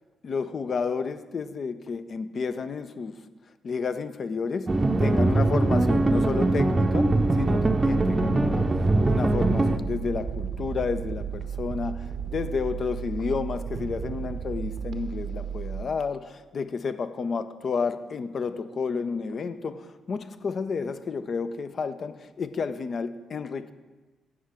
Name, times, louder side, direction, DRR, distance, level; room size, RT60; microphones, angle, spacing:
voice 1, 0.2-3.2 3.6-8.7 9.0-23.7, left 5 dB, 50° left, 11 dB, 0.6 m, -31 dB
sound 1, 4.7-9.8, right 2 dB, 30° right, 0.6 m, -22 dB
sound 2, 7.0-15.8, right 8 dB, 65° right, 0.8 m, -34 dB
16.5 x 6.4 x 3.5 m, 1.2 s
hypercardioid pair, 40°, 0 cm